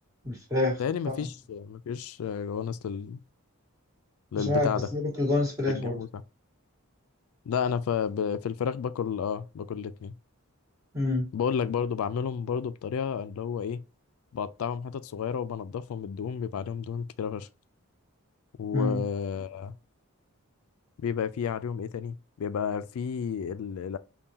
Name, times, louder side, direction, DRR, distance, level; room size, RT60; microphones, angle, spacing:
voice 1, 0.2-0.8 1.1-1.2 4.4-6.0 10.9-11.3 18.7-19.0, left 2 dB, 15° right, 1.7 m, -27 dB
voice 2, 0.8-3.2 4.3-4.9 5.7-6.2 7.5-10.1 11.3-13.8 14.3-17.5 18.6-19.7 21.0-24.0, left 7 dB, 75° left, 0.3 m, -31 dB
5.5 x 2.3 x 2.7 m
head